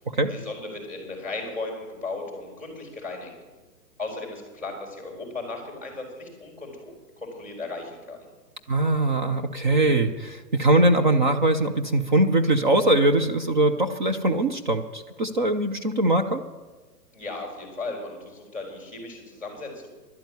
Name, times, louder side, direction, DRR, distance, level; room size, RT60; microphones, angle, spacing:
voice 1, 0.3-3.3 4.0-8.2 17.1-19.9, left 3 dB, 5° right, 0 dB, 4.2 m, -36 dB
voice 2, 8.7-16.4, right 2 dB, 30° right, 7 dB, 0.5 m, -22 dB
12.0 x 8.9 x 9.4 m, 1.3 s
hypercardioid pair, 155°, 48 cm